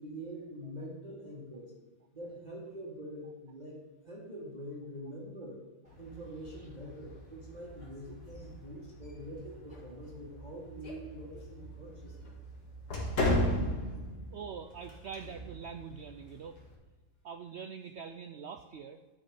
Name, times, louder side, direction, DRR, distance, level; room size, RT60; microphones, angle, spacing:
voice 1, 0.0-1.7 2.1-5.6 6.0-12.3, equal, 25° right, -4 dB, 1.7 m, -45 dB
sound 1, 5.9-16.7, left 1 dB, 75° left, 2.3 m, -38 dB
voice 2, 14.3-16.6 17.2-19.0, right 6 dB, 80° right, 7 dB, 0.6 m, -44 dB
10.0 x 6.4 x 4.9 m, 1.2 s
omnidirectional pair, 1.7 m